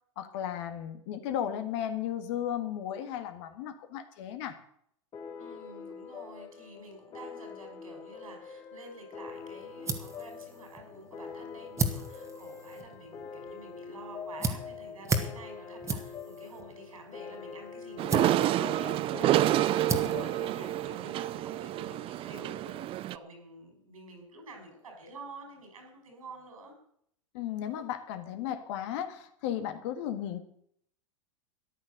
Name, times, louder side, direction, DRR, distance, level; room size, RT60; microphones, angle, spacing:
voice 1, 0.2-4.6 27.3-30.4, left 10 dB, 55° left, 8 dB, 1.7 m, -35 dB
sound 1, 5.1-22.2, left 6 dB, 25° left, 1.6 m, -44 dB
voice 2, 5.4-26.7, right 2 dB, 85° right, 3 dB, 5.4 m, -49 dB
sound 2, 9.3-21.4, right 3 dB, 15° right, 1.9 m, -38 dB
sound 3, 18.0-23.2, right 14 dB, 30° right, 0.5 m, -28 dB
14.0 x 10.0 x 6.6 m, 0.68 s
hypercardioid pair, 105°, 17 cm